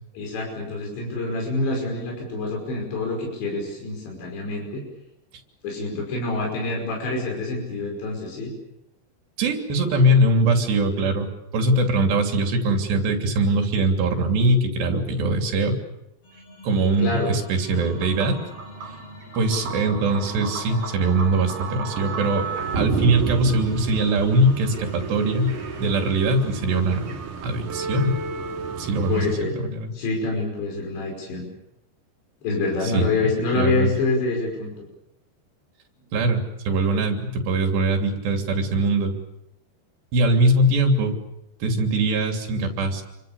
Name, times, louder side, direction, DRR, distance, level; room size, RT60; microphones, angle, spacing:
voice 1, 0.1-4.8 5.6-8.5 17.0-17.3 29.1-29.6 29.9-31.5 32.4-34.7, left 3 dB, 85° left, 0 dB, 7.7 m, -26 dB
voice 2, 9.4-15.8 16.6-18.4 19.4-22.5 22.8-25.5 25.8-27.0 27.4-28.2 28.8-29.2 29.6-29.9 32.9-33.1 33.6-33.9 36.1-39.2 40.1-41.2 41.6-43.0, right 2 dB, 75° right, 4 dB, 5.2 m, -21 dB
sound 1, 16.2-26.1, left 1 dB, 35° left, 5.8 m, -44 dB
sound 2, 17.8-29.4, right 4 dB, 50° right, 3.6 m, -32 dB
29.0 x 24.5 x 7.1 m, 0.85 s
omnidirectional pair, 5.0 m